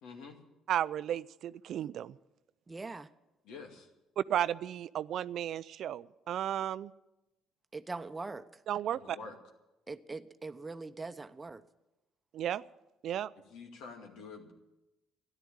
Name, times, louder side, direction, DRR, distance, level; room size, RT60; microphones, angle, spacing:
voice 1, 0.0-0.4 3.4-3.9 9.0-9.4 13.5-14.5, left 4 dB, 75° left, 3 dB, 2.3 m, -47 dB
voice 2, 0.7-2.2 4.2-6.9 8.7-9.2 12.3-12.6 13.0-13.3, right 10 dB, 65° right, 17 dB, 0.4 m, -34 dB
voice 3, 2.7-3.1 7.7-8.5 9.9-11.6, right 3 dB, 25° right, 11 dB, 0.9 m, -42 dB
13.5 x 11.0 x 8.8 m, 0.97 s
hypercardioid pair, 55°, 0 cm